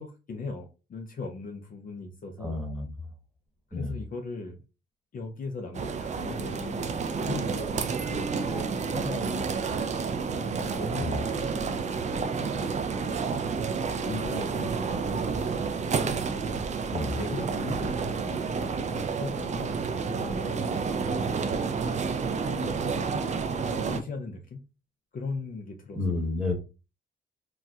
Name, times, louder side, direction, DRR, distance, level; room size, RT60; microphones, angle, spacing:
voice 1, 0.0-2.6 3.7-4.6 5.1-9.5 10.3-11.8 12.2-13.2 13.7-15.6 16.0-16.7 17.1-18.4 18.9-19.8 20.1-20.8 22.5-24.6 25.1-26.2, left 3 dB, 45° left, 0.6 m, -39 dB
voice 2, 2.4-2.9 3.7-3.9 11.0-11.2 16.9-17.2 25.9-26.5, left 3 dB, 5° right, 1.1 m, -30 dB
sound 1, 5.7-24.0, right 5 dB, 35° right, 0.4 m, -30 dB
4.2 x 2.1 x 2.3 m
cardioid pair, 90°, 20 cm